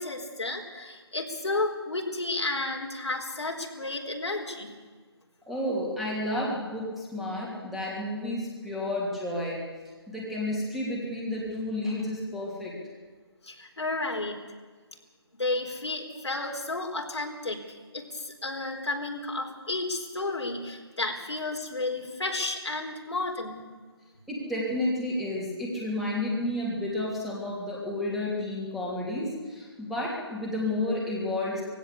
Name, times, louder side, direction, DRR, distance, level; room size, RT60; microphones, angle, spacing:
voice 1, 0.0-4.7 13.4-14.4 15.4-17.6 17.9-23.7, left 2 dB, 90° left, 2 dB, 4.2 m, -32 dB
voice 2, 5.5-9.6 10.1-12.7 24.3-31.6, left 1 dB, ahead, -5 dB, 3.0 m, -31 dB
20.5 x 16.5 x 8.4 m, 1.4 s
figure-of-eight pair, 165°, 14 cm